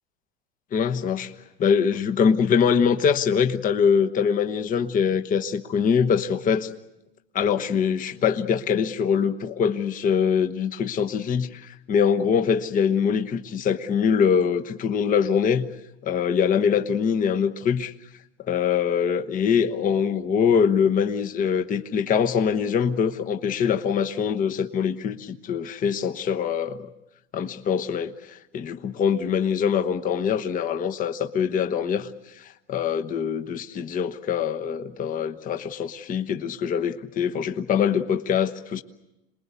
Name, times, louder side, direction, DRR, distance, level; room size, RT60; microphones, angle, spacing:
voice 1, 0.7-1.3 1.6-6.7 7.3-15.7 16.0-17.9 18.4-26.9 27.3-32.1 32.4-38.8, left 7 dB, 25° left, 7 dB, 1.1 m, -23 dB
27.5 x 20.5 x 8.3 m, 0.94 s
supercardioid pair, 135°, 33 cm